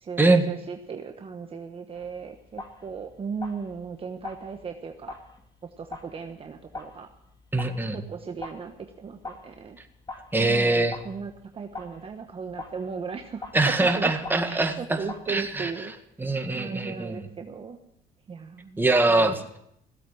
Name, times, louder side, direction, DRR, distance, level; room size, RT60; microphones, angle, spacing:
voice 1, 0.0-5.2 5.6-7.1 7.9-9.8 10.4-14.1 14.4-15.9 16.5-17.8 18.3-19.5, right 5 dB, 35° right, 5 dB, 1.2 m, -37 dB
sound 1, 1.9-15.7, left 3 dB, 25° left, 2.5 m, -44 dB
voice 2, 7.5-8.0 10.3-11.0 13.5-15.0 15.3-15.7 16.2-17.3 18.8-19.6, right 2 dB, 10° right, 5 dB, 1.9 m, -23 dB
16.5 x 8.3 x 8.5 m, 0.76 s
cardioid pair, 110°, 17 cm